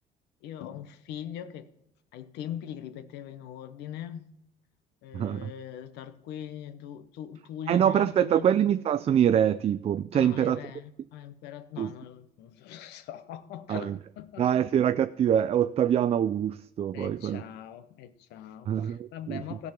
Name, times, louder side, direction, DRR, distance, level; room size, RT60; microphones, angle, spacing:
voice 1, 0.4-1.7 2.1-4.3 5.0-8.5 10.1-14.6 16.9-19.7, left 10 dB, 90° left, 0.9 m, -41 dB
voice 2, 5.1-5.5 7.7-10.6 11.8-11.9 13.7-14.0 14.4-17.4 18.7-19.4, right 9 dB, 35° right, 0.3 m, -25 dB
15.5 x 5.3 x 5.9 m
cardioid pair, 110°, 17 cm